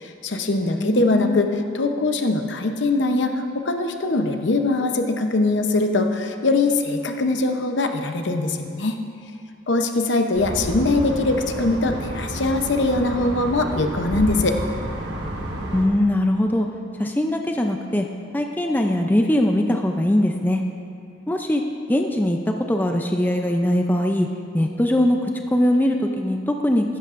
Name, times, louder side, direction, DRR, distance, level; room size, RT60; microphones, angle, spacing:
voice 1, 0.0-9.0 9.7-14.6, left 2 dB, 65° left, 5 dB, 0.8 m, -22 dB
voice 2, 0.6-1.5 15.7-16.7 17.0-18.1 18.3-20.6 21.3-21.6 21.9-22.4 22.7-24.3 24.5-25.2 25.5-27.0, left 1 dB, 10° left, 3 dB, 0.4 m, -21 dB
sound 1, 10.3-15.9, right 1 dB, 55° right, 1.4 m, -30 dB
15.5 x 12.0 x 2.5 m, 2.4 s
head